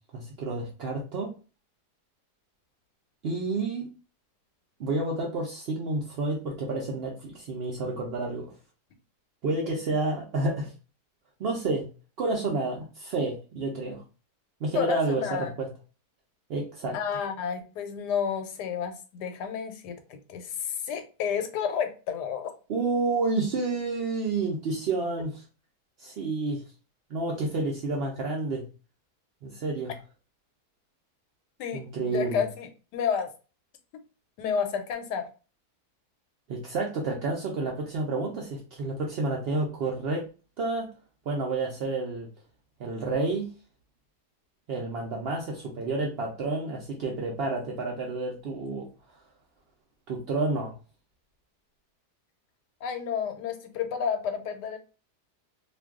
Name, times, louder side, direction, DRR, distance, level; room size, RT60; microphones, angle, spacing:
voice 1, 0.1-1.3 3.2-3.9 4.8-8.5 9.4-10.7 11.4-11.9 12.2-14.0 14.6-15.7 16.5-17.0 22.7-25.4 26.0-26.6 27.1-28.6 29.4-29.9 31.7-32.4 36.5-40.3 40.6-40.9 41.3-42.3 42.8-43.5 44.7-48.9 50.1-50.7, right 3 dB, 75° right, 0.5 m, -30 dB
voice 2, 14.7-15.5 16.9-22.5 31.6-33.3 34.4-35.3 52.8-54.8, left 7 dB, 90° left, 1.2 m, -31 dB
2.6 x 2.3 x 3.5 m
omnidirectional pair, 1.8 m